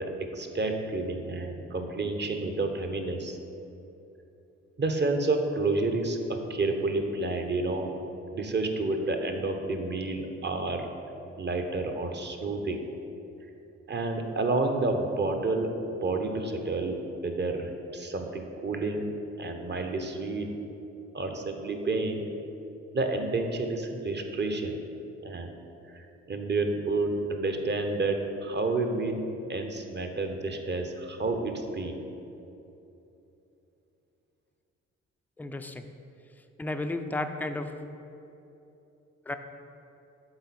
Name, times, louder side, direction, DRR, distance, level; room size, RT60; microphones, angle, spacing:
voice 1, 0.0-3.4 4.8-7.9 8.3-10.8 11.4-12.8 13.9-15.7 16.0-19.1 19.4-20.5 21.1-22.2 22.9-24.8 25.2-25.5 25.9-29.2 29.5-32.0, right 2 dB, 30° right, 4 dB, 0.8 m, -30 dB
voice 2, 35.4-35.9 36.6-37.7 39.3-39.4, left 2 dB, 5° left, 7 dB, 0.4 m, -33 dB
7.9 x 3.9 x 4.1 m, 2.9 s
hypercardioid pair, 45°, 34 cm